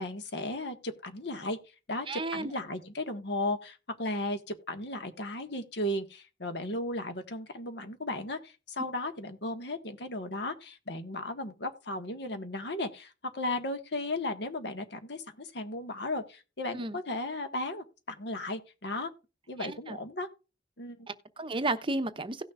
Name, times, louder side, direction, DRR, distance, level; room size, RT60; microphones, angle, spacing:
voice 1, 0.0-1.6 1.9-19.1 19.5-20.3 20.8-21.1, left 1 dB, 65° left, 1.6 m, -35 dB
voice 2, 2.1-2.5 16.7-17.0 19.6-20.0 21.1-22.4, right 2 dB, 30° right, 0.7 m, -33 dB
17.0 x 6.4 x 2.4 m
head